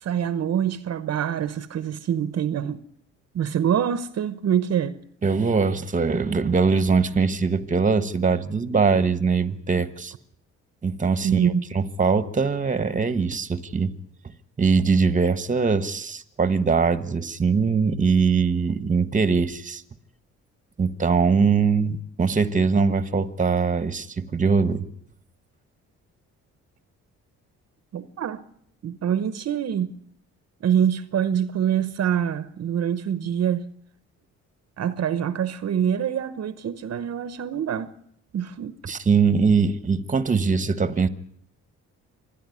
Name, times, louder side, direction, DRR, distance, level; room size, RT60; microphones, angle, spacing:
voice 1, 0.0-2.8 3.3-5.0 11.2-11.6 27.9-28.4 28.8-30.0 30.6-33.7 34.8-37.9 38.3-38.8, right 9 dB, 55° right, 1.0 m, -25 dB
voice 2, 5.2-10.1 10.8-13.9 14.6-19.8 20.8-24.8 38.9-41.1, right 5 dB, 25° right, 1.3 m, -22 dB
26.0 x 10.0 x 9.8 m
cardioid pair, 90°, 30 cm